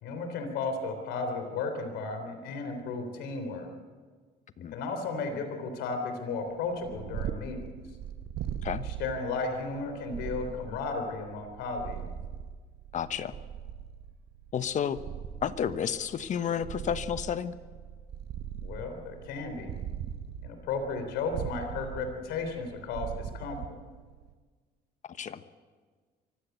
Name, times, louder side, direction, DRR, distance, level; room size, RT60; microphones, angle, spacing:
voice 1, 0.0-3.7 4.7-7.6 9.0-12.0 18.6-19.7 20.4-23.7, left 4 dB, 90° left, 6 dB, 3.6 m, -34 dB
Purr, 6.6-24.3, right 9 dB, 70° right, 1.0 m, -40 dB
voice 2, 12.9-13.4 14.5-15.0 15.4-17.5 25.0-25.4, left 8 dB, 45° left, 12 dB, 1.1 m, -31 dB
24.0 x 15.5 x 8.1 m, 1.5 s
cardioid pair, 110°, 17 cm